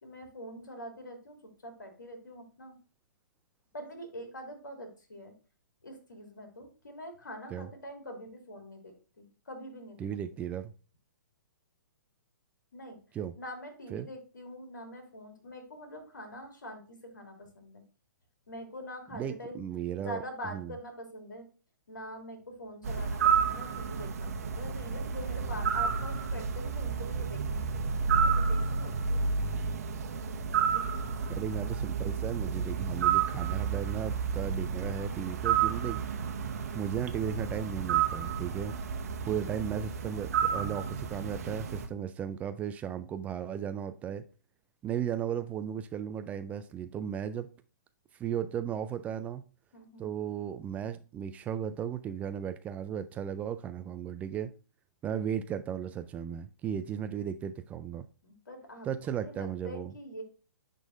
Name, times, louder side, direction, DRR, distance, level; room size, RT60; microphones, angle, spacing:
voice 1, 0.0-2.8 3.7-5.3 5.8-10.1 12.7-13.0 13.4-17.8 18.5-19.6 20.0-21.5 21.9-27.7 27.9-29.2 30.7-31.4 32.4-32.7 49.7-50.1 58.2-58.9 59.2-60.2, equal, 70° left, 2.7 m, -44 dB
voice 2, 10.0-10.7 13.1-13.3 13.9-14.1 19.1-20.2 20.5-20.7 31.3-36.0 36.7-38.7 39.2-44.3 44.8-47.5 48.2-49.4 50.0-54.5 55.0-58.1 58.8-59.9, right 9 dB, 15° right, 0.3 m, -35 dB
sound 1, 22.8-41.9, right 6 dB, 50° right, 1.1 m, -31 dB
10.5 x 3.8 x 2.5 m
figure-of-eight pair, 120°, 10 cm